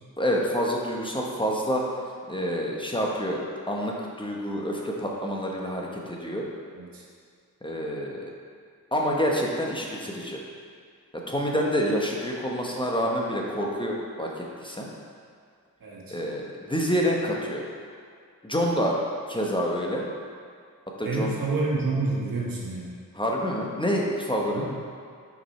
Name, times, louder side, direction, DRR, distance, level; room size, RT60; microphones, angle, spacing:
voice 1, 0.2-1.9 2.3-6.5 7.6-8.3 8.9-10.4 11.1-14.9 16.1-17.6 18.4-19.0 19.3-20.0 21.0-21.3 23.1-24.7, equal, 15° left, -2 dB, 1.0 m, -27 dB
voice 2, 15.8-16.2 21.0-22.9 24.5-24.7, right 3 dB, 80° right, -4 dB, 1.4 m, -28 dB
6.1 x 5.2 x 4.2 m, 2.2 s
cardioid pair, 60°, 34 cm